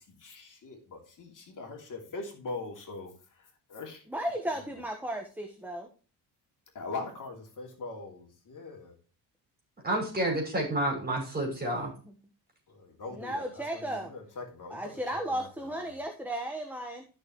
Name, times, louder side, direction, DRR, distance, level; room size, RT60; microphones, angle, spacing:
voice 1, 0.2-3.1 3.7-4.0 6.7-8.9 12.7-14.8 15.1-15.7, left 3 dB, 45° left, 1 dB, 3.0 m, -41 dB
voice 2, 4.1-5.9 12.1-12.2 13.1-14.1 14.7-17.0, right 1 dB, 5° right, 2 dB, 1.3 m, -35 dB
voice 3, 9.8-11.9, right 1 dB, 20° right, 0 dB, 5.8 m, -29 dB
13.0 x 6.7 x 3.1 m, 0.37 s
cardioid pair, 125°, 42 cm